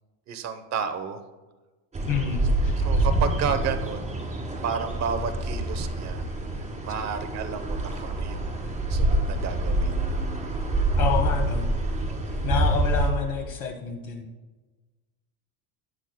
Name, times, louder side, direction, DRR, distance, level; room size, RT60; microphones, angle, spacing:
voice 1, 0.3-1.2 2.8-4.2 4.6-6.3 6.8-8.6 8.9-9.9, right 6 dB, 35° right, 8 dB, 0.9 m, -31 dB
sound 1, 1.9-13.1, right 2 dB, 15° right, 1.6 m, -26 dB
voice 2, 2.0-2.7 11.0-11.7 12.4-14.3, left 7 dB, 45° left, 1 dB, 1.5 m, -28 dB
19.5 x 7.9 x 2.2 m, 1.2 s
cardioid pair, 160°, 50 cm